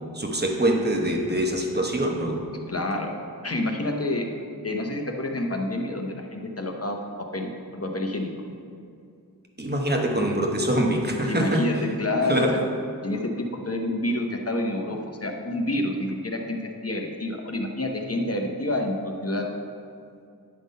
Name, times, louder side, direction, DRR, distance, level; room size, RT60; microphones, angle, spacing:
voice 1, 0.0-2.4 9.6-11.6 12.3-12.6, right 1 dB, 25° right, 1 dB, 1.0 m, -24 dB
voice 2, 2.7-3.1 3.4-4.3 4.6-8.3 11.3-12.5 13.0-19.5, left 1 dB, 40° left, 2 dB, 0.8 m, -28 dB
9.6 x 3.7 x 5.3 m, 2.4 s
wide cardioid pair, 40°, 38 cm